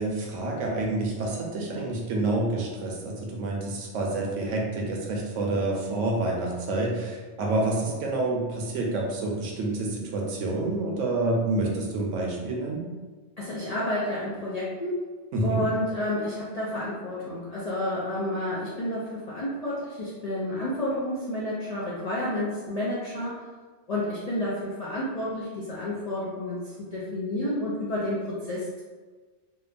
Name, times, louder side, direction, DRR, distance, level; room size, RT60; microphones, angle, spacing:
voice 1, 0.0-12.8 15.3-15.6, right 2 dB, 80° right, -1 dB, 0.9 m, -28 dB
voice 2, 13.4-15.0 15.4-23.4 23.9-28.8, left 1 dB, 65° left, -7 dB, 0.4 m, -30 dB
2.8 x 2.2 x 2.4 m, 1.4 s
omnidirectional pair, 1.2 m